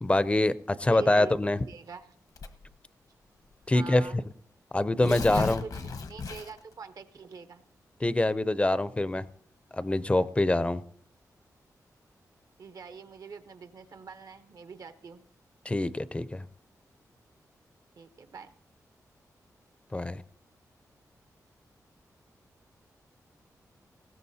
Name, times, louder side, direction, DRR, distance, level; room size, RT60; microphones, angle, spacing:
voice 1, 0.0-1.6 3.7-4.2 4.7-5.6 8.0-9.2 9.7-10.8 15.7-16.4 19.9-20.2, left 2 dB, 20° left, 15 dB, 0.5 m, -25 dB
voice 2, 0.9-1.4 1.7-2.1 3.7-4.2 5.0-7.7 12.6-15.2 18.0-18.5, right 5 dB, 70° right, 10 dB, 0.8 m, -43 dB
Tearing, 2.4-2.8 3.6-3.7 4.0-4.1 4.8-6.7, left 4 dB, 75° left, 1.0 m, -35 dB
20.0 x 16.0 x 2.7 m, 0.65 s
wide cardioid pair, 90°, 6 cm